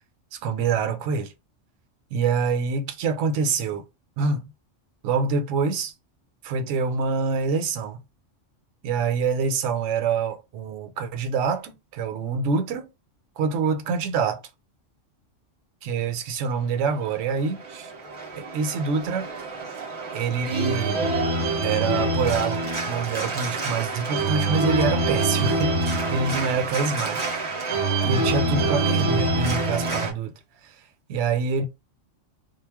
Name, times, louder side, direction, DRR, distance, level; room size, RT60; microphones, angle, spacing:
voice 1, 0.3-1.3 2.1-3.8 4.2-4.4 5.0-5.9 6.4-8.0 8.8-12.9 13.4-14.4 15.8-17.9 18.4-19.3 20.1-21.0 21.6-22.6 22.9-27.4 28.0-30.3 30.6-30.8 31.1-31.6, right 5 dB, 75° right, 0.9 m, -26 dB
Organ, 16.9-30.1, right 2 dB, 35° right, 0.6 m, -26 dB
2.3 x 2.0 x 3.3 m
omnidirectional pair, 1.3 m